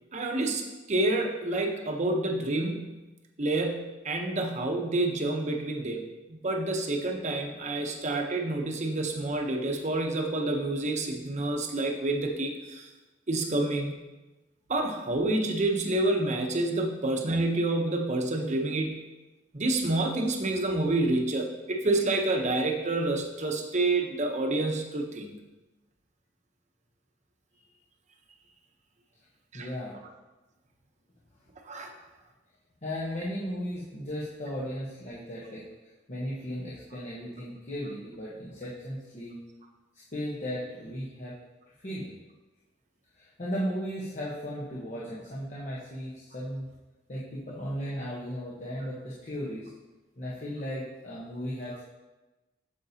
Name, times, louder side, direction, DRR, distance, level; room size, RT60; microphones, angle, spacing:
voice 1, 0.1-0.6 0.9-3.1 3.4-6.0 6.3-12.9 13.3-14.0 14.7-19.0 19.5-25.4 29.5-29.7 31.6-31.9, right 2 dB, 40° right, 2 dB, 0.9 m, -28 dB
voice 2, 29.5-29.9 32.8-35.6 36.1-39.4 40.1-41.4 41.8-42.1 43.2-46.7 47.1-49.7 50.2-51.8, equal, 40° left, -7 dB, 1.1 m, -36 dB
8.7 x 6.7 x 2.8 m, 1.1 s
head